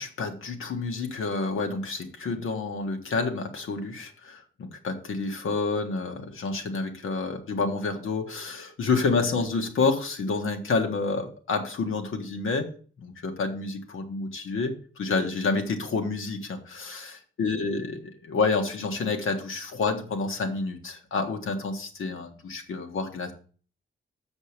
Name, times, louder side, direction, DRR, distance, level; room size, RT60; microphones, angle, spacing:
voice 1, 0.0-12.7 13.0-17.8 18.2-23.3, left 4 dB, 80° left, 4 dB, 1.5 m, -29 dB
7.1 x 5.3 x 6.6 m, 0.42 s
wide cardioid pair, 165°, 21 cm